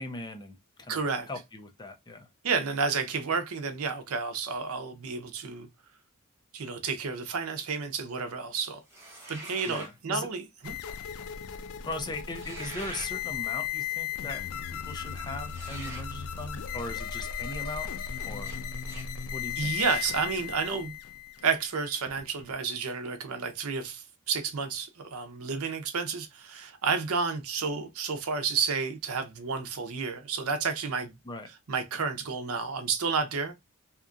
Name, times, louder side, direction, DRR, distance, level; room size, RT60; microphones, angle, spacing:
voice 1, 0.0-2.3 9.6-10.3 11.8-14.4 14.7-17.9 18.2-18.6 19.3-19.8 31.2-31.5, left 2 dB, 20° left, 0.5 m, -39 dB
voice 2, 0.9-1.3 2.4-5.7 6.5-8.8 9.3-10.7 19.6-20.9 21.4-31.1 31.7-33.5, right 5 dB, 80° right, 0.6 m, -31 dB
sound 1, 8.9-10.0 12.3-13.1 15.5-16.1 18.4-18.6 18.8-19.1 19.7-20.1, right 2 dB, 10° right, 1.0 m, -43 dB
sound 2, 10.6-22.5, left 8 dB, 75° left, 0.3 m, -36 dB
2.8 x 2.3 x 2.5 m
head